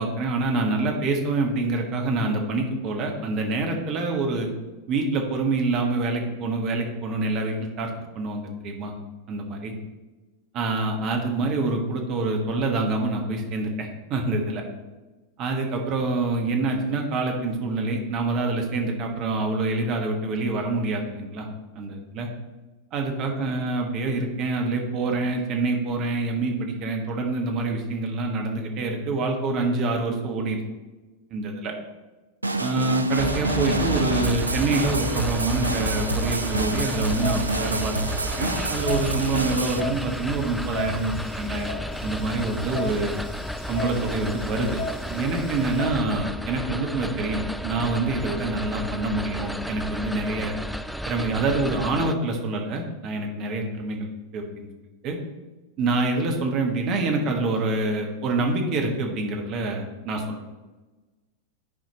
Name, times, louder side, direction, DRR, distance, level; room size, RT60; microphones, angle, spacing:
voice 1, 0.0-4.5 4.9-8.9 9.3-9.7 10.5-14.6 15.4-21.5 21.7-22.3 22.9-30.6 31.3-31.7 32.6-37.9 38.4-43.1 43.7-44.8 45.1-50.5 51.0-54.7 55.0-55.2 55.8-60.4, right 2 dB, 35° right, 2 dB, 1.3 m, -26 dB
sound 1, 32.4-39.8, right 2 dB, 80° right, 0.4 m, -28 dB
sound 2, 33.2-52.1, equal, ahead, 0.4 m, -32 dB
sound 3, 36.3-45.8, left 2 dB, 55° left, 1.9 m, -37 dB
11.0 x 4.8 x 3.0 m, 1.2 s
figure-of-eight pair, 90°, 0 cm